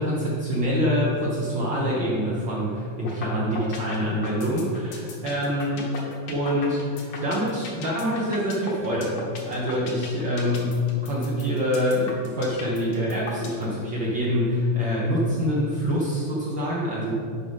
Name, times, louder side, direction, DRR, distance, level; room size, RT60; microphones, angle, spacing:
voice 1, 0.0-5.8 6.3-9.2 9.5-17.1, equal, 85° right, -6 dB, 1.0 m, -25 dB
sound 1, 3.0-3.3 3.6-13.6, left 5 dB, 70° left, 2.2 m, -37 dB
6.5 x 5.2 x 5.5 m, 2.4 s
omnidirectional pair, 3.6 m